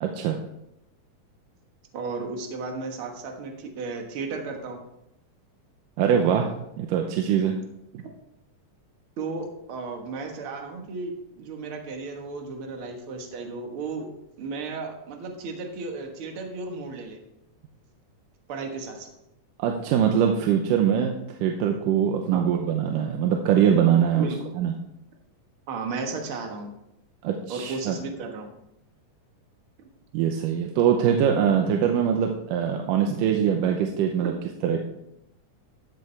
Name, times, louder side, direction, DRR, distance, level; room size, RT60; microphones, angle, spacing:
voice 1, 0.0-0.4 6.0-6.5 6.8-7.6 7.9-8.0 19.6-24.3 24.6-24.7 27.2-28.0 30.1-34.3 34.6-34.8, right 8 dB, 90° right, 3 dB, 2.4 m, -23 dB
voice 2, 1.9-4.8 9.2-14.1 14.4-17.2 18.5-19.1 22.3-22.5 24.2-24.4 25.7-26.8 27.5-28.5 34.2-34.3, right 4 dB, 50° right, 3 dB, 1.8 m, -34 dB
13.0 x 8.3 x 3.3 m, 0.83 s
omnidirectional pair, 3.8 m